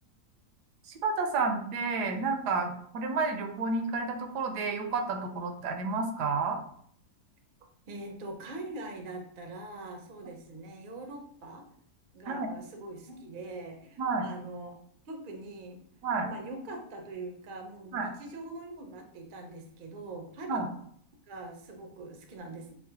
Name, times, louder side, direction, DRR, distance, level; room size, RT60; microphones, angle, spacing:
voice 1, 1.0-6.6 12.3-12.5 14.0-14.3 16.0-16.3 17.9-18.1 20.5-20.7, right 4 dB, 80° right, 5 dB, 1.2 m, -30 dB
voice 2, 7.9-11.6 12.1-15.8 16.1-20.6 21.3-22.7, right 2 dB, 60° right, 3 dB, 0.5 m, -43 dB
5.6 x 2.1 x 2.7 m, 0.64 s
omnidirectional pair, 1.8 m